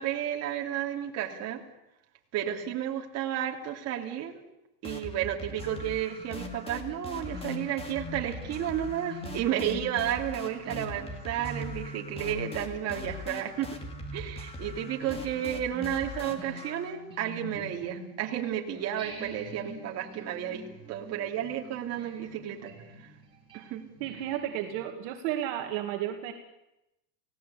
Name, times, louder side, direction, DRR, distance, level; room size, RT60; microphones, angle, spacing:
voice 1, 0.0-1.6 2.3-4.4 4.8-13.7 14.1-22.7 23.0-23.1 23.5-23.9, right 10 dB, 30° right, 1 dB, 2.9 m, -32 dB
sound 1, 4.8-16.9, left 2 dB, 10° left, 2.4 m, -42 dB
sound 2, 5.4-18.5 19.0-24.9, equal, 10° right, 5.0 m, -45 dB
voice 2, 24.0-26.3, right 11 dB, 50° right, 4 dB, 2.2 m, -32 dB
29.5 x 17.5 x 8.5 m, 0.93 s
supercardioid pair, 170°, 47 cm